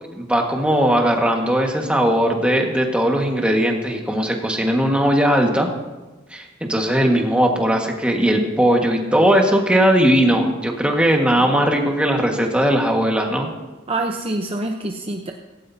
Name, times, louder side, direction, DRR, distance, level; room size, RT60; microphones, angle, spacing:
voice 1, 0.1-5.7 6.3-13.5, equal, 5° right, 1 dB, 1.6 m, -18 dB
voice 2, 13.9-15.3, right 2 dB, 30° right, 2 dB, 0.8 m, -26 dB
17.0 x 16.5 x 2.8 m, 1.2 s
head